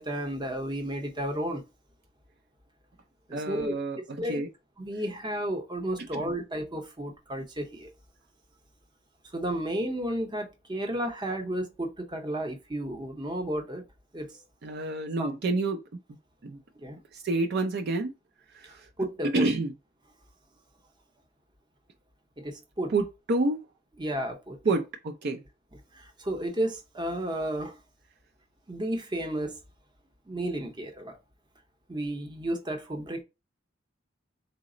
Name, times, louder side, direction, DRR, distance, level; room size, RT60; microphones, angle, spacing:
voice 1, 0.0-1.6 3.3-3.7 4.2-4.4 4.8-7.9 9.3-13.8 14.1-14.3 15.2-15.3 16.8-17.0 19.0-19.5 22.4-22.9 24.0-24.6 25.9-27.8 28.7-29.6 30.3-31.2 31.9-33.2, right 1 dB, 25° right, 0.7 m, -32 dB
voice 2, 3.3-4.5 6.1-6.4 14.6-15.8 16.4-16.6 17.1-18.1 18.5-18.9 19.3-19.7 22.9-23.6 24.6-25.4, right 2 dB, 55° right, 0.4 m, -28 dB
4.0 x 2.0 x 3.7 m
head